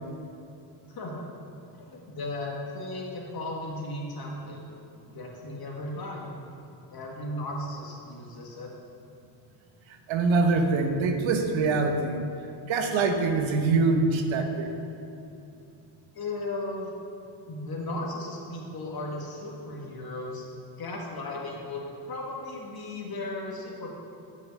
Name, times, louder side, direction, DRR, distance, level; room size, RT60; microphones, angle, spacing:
voice 1, 0.9-1.3 1.8-4.6 4.9-6.4 6.9-8.7 16.1-16.9 17.5-20.4 20.8-23.9, left 2 dB, 50° left, -1 dB, 1.9 m, -36 dB
voice 2, 10.1-12.2 12.6-14.7, right 3 dB, 70° right, 5 dB, 1.0 m, -24 dB
7.8 x 5.7 x 6.4 m, 2.8 s
cardioid pair, 95°, 48 cm